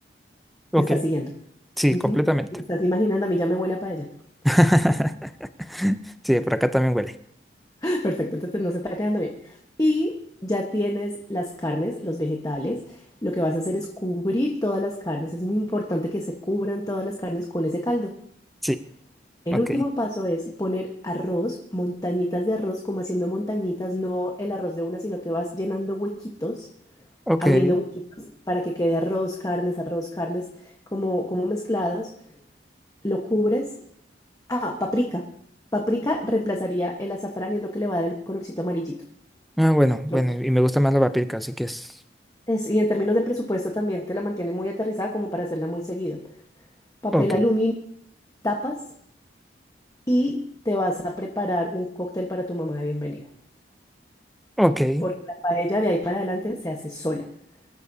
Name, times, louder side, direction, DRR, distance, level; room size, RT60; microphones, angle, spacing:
voice 1, 0.8-1.3 1.9-2.2 2.7-4.1 7.8-10.1 10.4-18.1 19.5-26.7 27.4-27.8 28.2-32.1 33.0-33.7 34.5-35.2 35.7-39.0 40.1-40.2 42.5-46.2 47.0-47.7 48.4-48.8 50.1-53.3 55.0-55.1 55.4-57.3, left 1 dB, 20° left, 1 dB, 1.3 m, -26 dB
voice 2, 1.8-2.5 4.4-5.3 5.7-7.1 18.6-18.8 19.5-19.6 27.3-27.8 39.6-41.9 47.1-47.4 54.6-55.1, equal, ahead, 11 dB, 0.5 m, -21 dB
24.5 x 13.5 x 2.8 m, 0.69 s
head